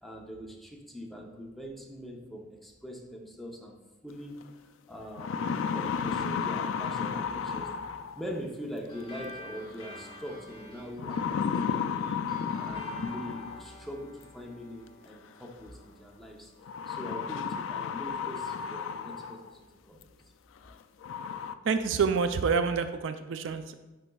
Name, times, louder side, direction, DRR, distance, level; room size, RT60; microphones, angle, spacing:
voice 1, 0.0-3.8 4.0-5.4 5.7-7.9 8.1-16.5 16.9-19.6 19.9-20.0 20.6-20.7, equal, ahead, 0 dB, 0.7 m, -42 dB
sound 1, 4.4-4.5 5.0-8.4 9.8-10.2 11.0-13.8 15.0-15.1 16.7-19.5 20.0-20.1 20.7-20.8 21.0-21.5, left 6 dB, 70° left, 0.3 m, -33 dB
sound 2, 8.9-17.7, left 1 dB, 25° left, 1.2 m, -50 dB
voice 2, 21.6-23.7, right 5 dB, 65° right, 9 dB, 0.4 m, -27 dB
9.7 x 5.1 x 2.3 m, 1.1 s
head